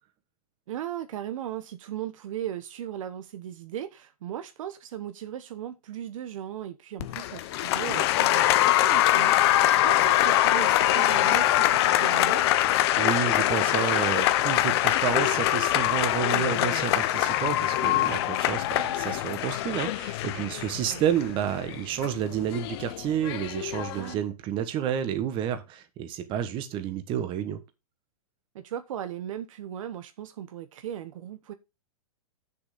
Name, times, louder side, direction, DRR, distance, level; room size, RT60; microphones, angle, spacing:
voice 1, 0.7-12.4 20.5-21.0 23.9-24.2 28.5-31.5, right 10 dB, 60° right, 1.1 m, -37 dB
Applause, 7.0-24.1, left 14 dB, 45° left, 0.8 m, -24 dB
voice 2, 13.0-27.6, right 9 dB, 25° right, 1.4 m, -30 dB
8.1 x 7.0 x 5.2 m
hypercardioid pair, 150°, 19 cm